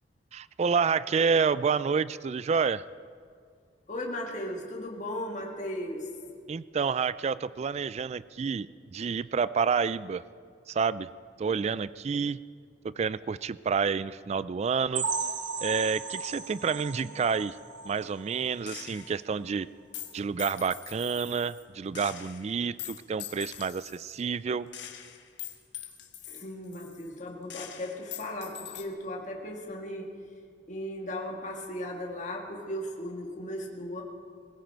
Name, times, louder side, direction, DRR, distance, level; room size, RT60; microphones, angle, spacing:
voice 1, 0.3-2.8 6.5-8.7 8.9-10.2 10.7-11.1 11.4-12.4 12.8-15.1 15.6-17.6 17.9-19.7 20.1-24.7, right 5 dB, 35° right, 18 dB, 0.3 m, -29 dB
voice 2, 3.9-6.1 26.3-30.1 30.7-34.0, left 1 dB, 40° left, 0 dB, 1.8 m, -36 dB
sound 1, 14.9-18.6 19.0-19.1 19.5-19.6 20.1-20.2, right 4 dB, 75° right, 1.3 m, -35 dB
Gunshot gunfire, 18.7-19.3 19.9-21.6 21.9-24.2 24.7-27.2 27.5-28.9, left 11 dB, 70° left, 1.3 m, -43 dB
20.5 x 15.5 x 4.6 m, 2.2 s
head